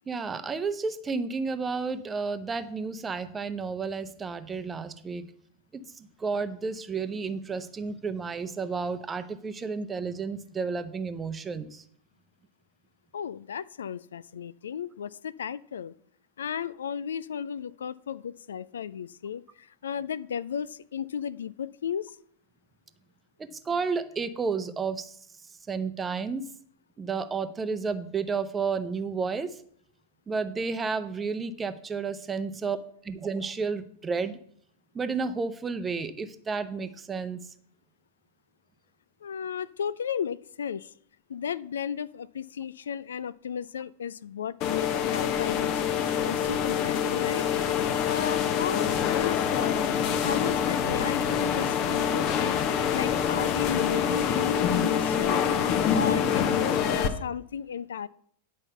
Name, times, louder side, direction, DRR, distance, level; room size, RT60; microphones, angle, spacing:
voice 1, 0.1-5.3 5.7-11.8 23.4-25.2 25.7-26.4 27.0-29.5 30.3-32.8 33.0-34.4 34.9-37.4, right 5 dB, 15° right, 11 dB, 0.8 m, -31 dB
voice 2, 13.1-15.9 16.4-22.1 39.2-40.9 41.3-47.5 48.0-52.6 52.9-55.5 55.9-58.1, left 8 dB, 65° left, 18 dB, 0.3 m, -34 dB
sound 1, 44.6-57.1, left 8 dB, 40° left, 1.0 m, -26 dB
10.0 x 5.4 x 6.8 m, 0.63 s
figure-of-eight pair, 90°, 0 cm